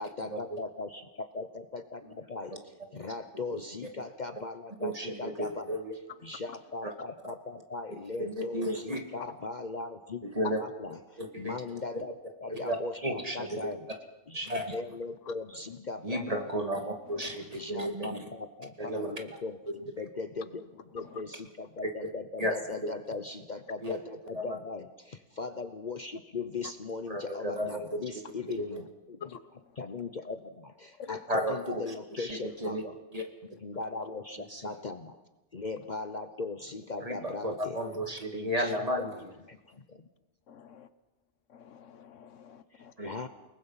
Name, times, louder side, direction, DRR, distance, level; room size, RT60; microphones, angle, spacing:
voice 1, 0.0-5.8 6.2-13.9 14.3-16.3 17.5-33.0 33.5-35.2 35.5-37.8 38.3-38.8 39.4-40.1 42.7-43.3, left 3 dB, 40° left, 9 dB, 1.0 m, -39 dB
voice 2, 4.8-5.9 6.8-6.9 8.2-9.0 10.2-10.6 11.2-11.5 12.5-12.8 13.0-13.7 14.3-14.7 16.0-18.2 18.8-19.1 22.4-22.5 23.8-23.9 24.3-24.6 27.1-27.9 28.6-28.8 31.3-31.8 32.2-32.8 33.1-33.2 34.5-34.6 37.0-39.1 43.0-43.1, equal, 30° right, 4 dB, 2.3 m, -33 dB
voice 3, 40.5-40.9 41.5-42.9, left 8 dB, 85° left, 13 dB, 1.4 m, -46 dB
29.5 x 19.5 x 5.7 m, 1.0 s
omnidirectional pair, 1.2 m